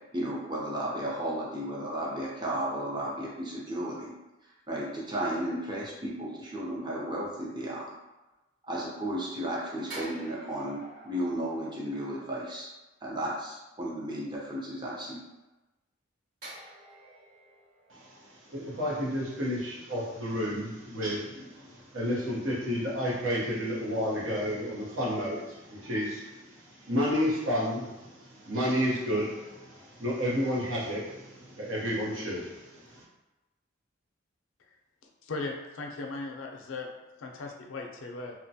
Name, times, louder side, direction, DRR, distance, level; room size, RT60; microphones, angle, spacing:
voice 1, 0.1-4.1 4.7-7.9 8.7-12.7 13.0-15.2, right 1 dB, 20° right, -5 dB, 0.6 m, -34 dB
sound 1, 9.9-12.6 16.4-19.6 19.9-20.1, right 1 dB, 45° right, 0.9 m, -49 dB
voice 2, 17.9-33.0, equal, 85° right, -5 dB, 0.9 m, -31 dB
voice 3, 35.2-36.9 37.2-38.3, left 3 dB, 80° left, 2 dB, 0.4 m, -37 dB
2.8 x 2.2 x 2.7 m, 1.0 s
head